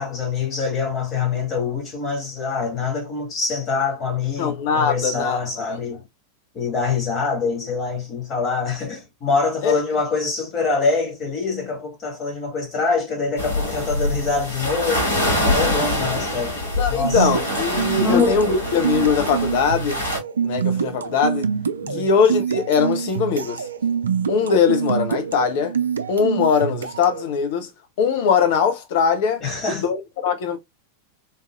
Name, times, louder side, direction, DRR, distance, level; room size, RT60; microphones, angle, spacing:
voice 1, 0.0-6.0 6.5-15.2 15.5-16.6 16.9-17.3 18.0-18.4 21.8-22.1 29.4-29.9, left 4 dB, 30° left, 1.9 m, -24 dB
voice 2, 4.4-5.4 9.6-9.8 16.8-20.0 20.4-21.5 21.9-23.7 24.3-25.7 26.1-27.7 28.0-29.4 29.7-30.6, left 6 dB, 50° left, 0.6 m, -21 dB
sound 1, 13.4-20.2, left 1 dB, 70° left, 2.1 m, -25 dB
sound 2, 17.0-27.3, right 7 dB, 70° right, 0.4 m, -26 dB
3.9 x 2.6 x 2.4 m
figure-of-eight pair, 90°, 0 cm